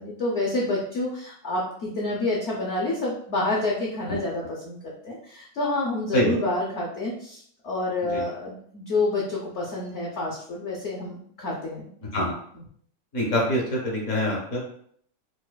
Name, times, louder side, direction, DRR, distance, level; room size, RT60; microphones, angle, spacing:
voice 1, 0.0-11.9 12.5-12.6, left 2 dB, 80° left, -4 dB, 0.6 m, -28 dB
voice 2, 13.1-14.8, equal, 55° left, -2 dB, 0.9 m, -25 dB
4.7 x 2.3 x 2.2 m, 0.63 s
omnidirectional pair, 2.0 m